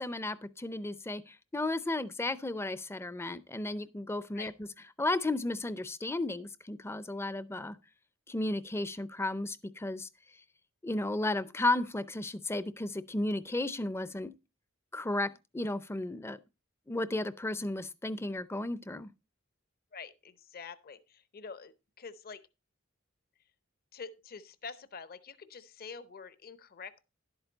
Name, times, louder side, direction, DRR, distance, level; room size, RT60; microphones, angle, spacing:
voice 1, 0.0-4.7 5.0-7.8 8.3-10.1 10.8-14.3 14.9-16.4 16.9-19.1, left 2 dB, 10° left, 0.5 m, -34 dB
voice 2, 19.9-22.4 23.9-27.0, left 5 dB, 45° left, 0.7 m, -46 dB
11.0 x 8.0 x 3.9 m
head